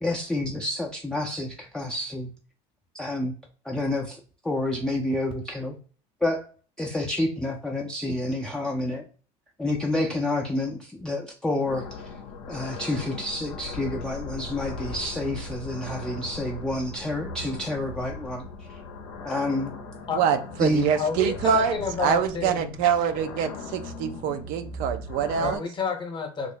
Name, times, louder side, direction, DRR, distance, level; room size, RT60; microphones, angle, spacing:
voice 1, 0.0-2.3 2.9-3.3 3.6-5.8 6.2-6.5 6.8-9.1 9.6-12.1 12.5-18.8 19.2-19.7 20.6-20.9 21.5-21.6, left 1 dB, 5° left, -1 dB, 0.4 m, -29 dB
sound 1, 11.7-25.6, left 3 dB, 85° left, 0.6 m, -38 dB
voice 2, 20.1-25.6, right 7 dB, 65° right, 9 dB, 0.4 m, -25 dB
voice 3, 21.0-22.7 25.4-26.6, left 5 dB, 30° left, 5 dB, 0.8 m, -30 dB
3.1 x 2.0 x 3.8 m, 0.39 s
supercardioid pair, 105°, 16 cm